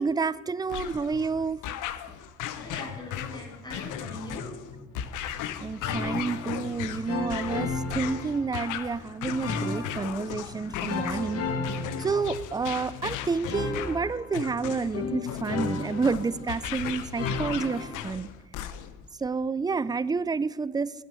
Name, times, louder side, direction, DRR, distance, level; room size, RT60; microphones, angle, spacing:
voice 1, 0.0-1.6 5.6-11.4 12.0-18.3 19.2-20.9, right 4 dB, 15° right, 18 dB, 0.4 m, -29 dB
sound 1, 0.7-19.1, left 10 dB, 85° left, 0.8 m, -37 dB
voice 2, 2.5-5.1, left 1 dB, 15° left, 0 dB, 3.3 m, -41 dB
sound 2, 5.8-6.7 7.1-8.8 9.4-10.4 10.9-12.8 13.5-16.7 17.2-18.1, left 3 dB, 50° left, 1.5 m, -34 dB
9.1 x 7.2 x 8.1 m, 1.3 s
cardioid pair, 90°, 30 cm